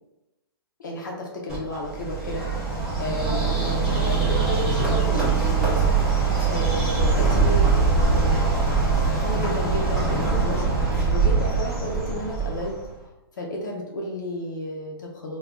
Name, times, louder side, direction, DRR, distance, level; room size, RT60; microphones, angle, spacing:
voice 1, 0.8-2.7 3.0-4.2 4.6-6.0 6.5-10.6 11.0-12.8 13.4-15.4, left 1 dB, 50° left, -1 dB, 0.5 m, -32 dB
Bird, 1.5-12.9, right 4 dB, 5° right, 0.4 m, -22 dB
2.3 x 2.2 x 3.4 m, 1.0 s
hypercardioid pair, 175°, 13 cm